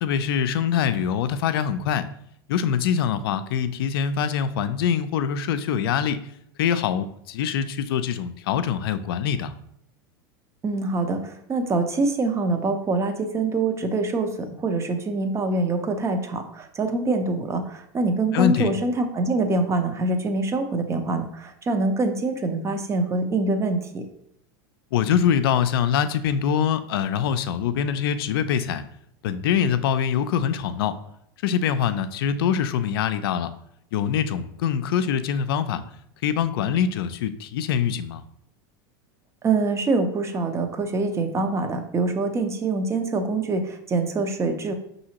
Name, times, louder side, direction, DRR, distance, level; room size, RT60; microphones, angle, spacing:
voice 1, 0.0-2.1 2.5-6.2 6.6-9.5 18.3-18.7 24.9-28.8 29.2-31.0 31.4-33.5 33.9-35.8 36.2-38.2, left 8 dB, 80° left, 12 dB, 0.4 m, -24 dB
voice 2, 10.6-24.0 39.4-44.7, right 3 dB, 25° right, 6 dB, 0.7 m, -25 dB
5.6 x 2.7 x 2.9 m, 0.73 s
hypercardioid pair, 110°, 12 cm